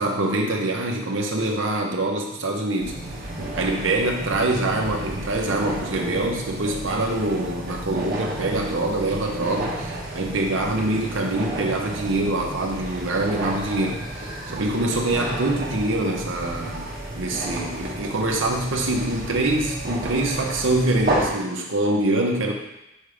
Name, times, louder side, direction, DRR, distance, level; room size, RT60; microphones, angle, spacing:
voice 1, 0.0-2.9 3.5-16.9 17.1-22.5, right 2 dB, 65° right, 1 dB, 0.9 m, -24 dB
sound 1, 2.8-21.3, right 1 dB, 45° right, 1.1 m, -32 dB
5.4 x 3.6 x 4.9 m, 0.90 s
head